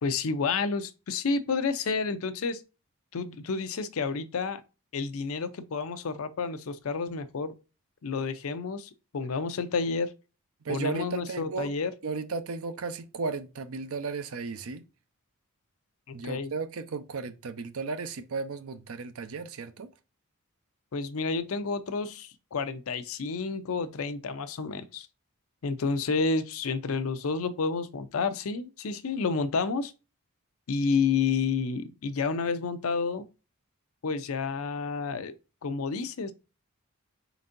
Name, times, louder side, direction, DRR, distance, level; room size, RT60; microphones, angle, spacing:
voice 1, 0.0-2.6 3.1-4.6 4.9-7.5 8.0-10.1 10.7-11.9 16.2-16.5 20.9-25.1 25.6-29.9 30.7-33.2 34.0-35.3 35.6-36.3, left 4 dB, 70° left, 0.5 m, -30 dB
voice 2, 10.6-11.7 12.0-14.8 16.1-19.9, right 4 dB, 75° right, 0.6 m, -34 dB
4.3 x 4.0 x 2.5 m
head